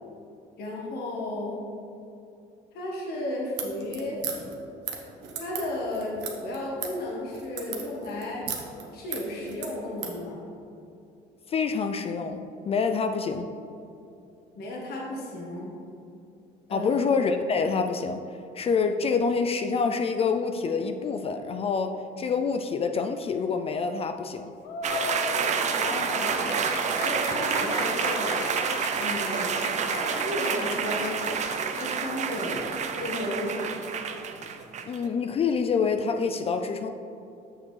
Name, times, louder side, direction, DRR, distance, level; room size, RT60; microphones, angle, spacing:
voice 1, 0.6-1.6 2.7-4.2 5.4-8.5 8.9-10.5 14.5-15.7 16.7-16.9 25.7-26.6 27.0-28.5 29.0-29.5 29.9-31.4 31.7-32.6 33.0-33.8, left 1 dB, 70° left, -3 dB, 1.4 m, -33 dB
sound 1, 3.5-10.2, right 7 dB, 90° right, 1.0 m, -37 dB
voice 2, 11.5-13.5 16.7-18.2 18.5-24.5 34.9-36.9, left 5 dB, 35° left, 7 dB, 0.4 m, -26 dB
sound 2, 24.6-32.1, left 5 dB, 85° left, 0.7 m, -37 dB
sound 3, 24.8-35.1, right 6 dB, 45° right, 0.5 m, -29 dB
7.3 x 6.6 x 3.2 m, 2.7 s
cardioid pair, 110°, 17 cm